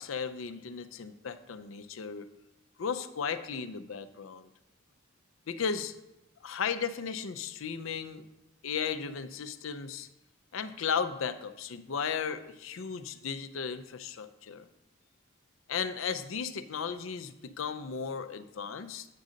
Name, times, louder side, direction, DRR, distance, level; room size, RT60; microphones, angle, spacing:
voice 1, 0.0-2.3 2.8-4.5 5.5-5.9 6.4-8.2 8.6-10.1 10.5-14.7 15.7-19.1, left 6 dB, 70° left, 11 dB, 0.5 m, -35 dB
8.4 x 3.8 x 6.3 m, 0.93 s
head